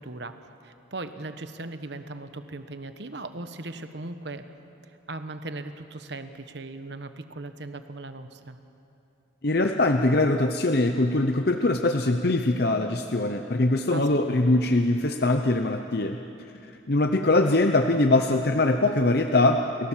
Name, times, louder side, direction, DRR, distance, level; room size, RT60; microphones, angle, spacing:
voice 1, 0.0-4.5 5.1-8.6 13.9-14.2, right 2 dB, 60° right, 9 dB, 1.2 m, -38 dB
voice 2, 9.4-16.2 16.9-19.9, left 2 dB, 50° left, 6 dB, 0.8 m, -22 dB
29.5 x 17.0 x 7.5 m, 2.8 s
head